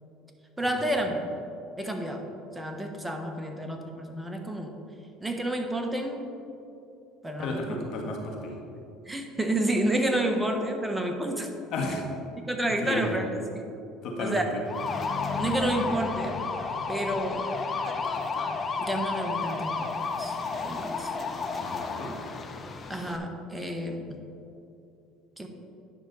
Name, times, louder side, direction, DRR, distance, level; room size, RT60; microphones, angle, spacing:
voice 1, 0.6-1.3 1.8-2.2 2.5-4.7 5.2-6.3 7.2-7.8 9.1-11.5 12.5-13.3 14.2-14.4 15.4-16.4 16.9-17.5 18.8-20.4 20.6-21.1 22.9-24.0 25.4-25.5, right 1 dB, 10° right, 4 dB, 1.1 m, -30 dB
voice 2, 7.4-8.5 11.7-12.0 12.6-13.2 14.0-14.6 21.6-22.1, left 2 dB, 60° left, 0 dB, 1.6 m, -33 dB
sound 1, 14.7-23.2, left 4 dB, 35° left, 0.7 m, -32 dB
10.0 x 6.0 x 4.1 m, 2.7 s
supercardioid pair, 85°, 0 cm